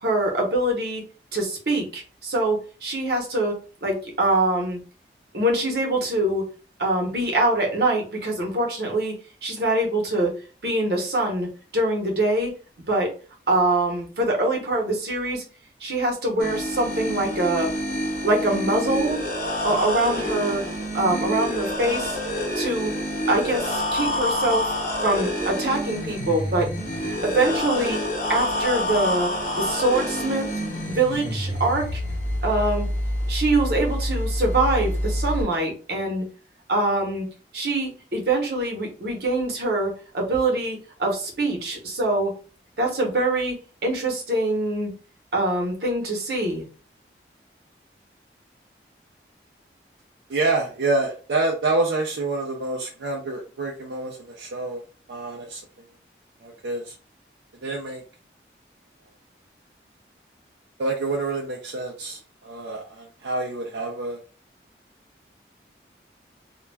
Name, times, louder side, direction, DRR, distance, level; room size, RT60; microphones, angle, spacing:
voice 1, 0.0-1.0 1.3-3.5 3.8-4.8 5.3-6.4 6.8-9.1 9.4-10.3 10.6-11.5 11.7-12.5 12.9-13.1 13.5-15.4 15.8-17.7 18.2-19.2 19.6-20.6 20.9-22.2 22.6-22.9 23.3-24.7 25.0-26.7 27.2-28.0 28.3-30.5 30.9-32.0 32.4-32.9 33.3-36.2 36.7-37.3 37.5-42.3 42.8-43.6 43.8-44.9 45.3-46.6, right 2 dB, 65° right, 0 dB, 0.9 m, -24 dB
sound 1, 16.4-35.4, left 1 dB, 45° left, 0.8 m, -27 dB
voice 2, 50.3-54.8 55.1-55.6 56.4-57.0 57.6-58.0 60.8-64.2, right 2 dB, 85° right, 0 dB, 0.5 m, -27 dB
2.3 x 2.1 x 3.3 m, 0.36 s
head